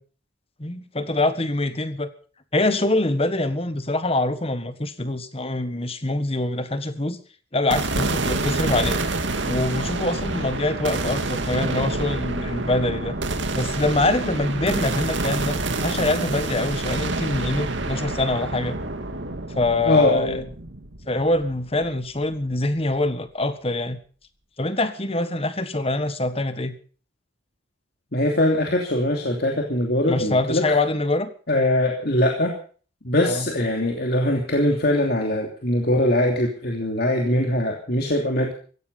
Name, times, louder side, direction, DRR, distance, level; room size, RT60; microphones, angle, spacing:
voice 1, 0.6-2.1 2.5-7.2 7.5-9.0 9.4-13.2 13.5-18.8 19.5-20.4 21.1-24.0 24.6-26.8 30.1-31.3 33.2-33.5, left 2 dB, 30° left, 1.5 m, -24 dB
sound 1, 7.7-22.0, right 2 dB, 75° right, 2.4 m, -27 dB
voice 2, 19.8-20.4 28.1-30.6 31.5-32.5 33.0-38.5, left 1 dB, 55° left, 2.9 m, -22 dB
16.5 x 15.5 x 5.5 m
head